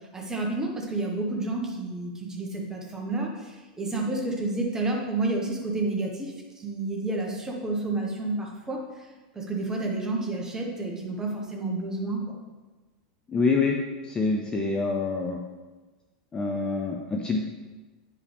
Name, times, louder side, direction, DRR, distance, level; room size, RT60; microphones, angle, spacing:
voice 1, 0.1-9.1 9.3-12.4, right 2 dB, 10° right, -1 dB, 1.4 m, -30 dB
voice 2, 13.3-13.8 14.1-15.4 16.3-17.4, left 4 dB, 15° left, 1 dB, 0.6 m, -26 dB
9.4 x 4.9 x 3.5 m, 1.2 s
supercardioid pair, 130°, 5 cm